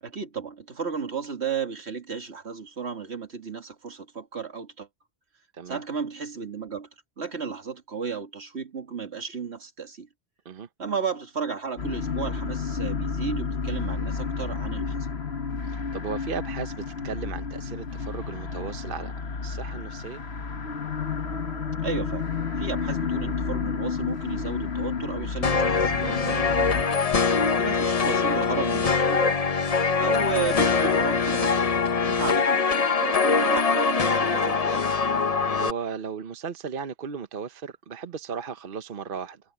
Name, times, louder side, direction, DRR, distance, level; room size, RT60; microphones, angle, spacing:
voice 1, 0.0-4.9 5.7-6.9 7.2-10.1 10.8-15.0 21.8-22.3 22.6-26.8 27.5-29.2 30.0-31.7 32.0-34.9, right 6 dB, 80° right, 2.3 m, -33 dB
sound 1, 11.8-26.8, left 5 dB, 75° left, 1.7 m, -31 dB
voice 2, 15.6-19.1 19.4-20.2 27.3-27.5 35.6-39.4, right 6 dB, 55° right, 1.0 m, -36 dB
sound 2, 25.4-35.7, left 5 dB, 40° left, 0.8 m, -23 dB
omnidirectional pair, 1.1 m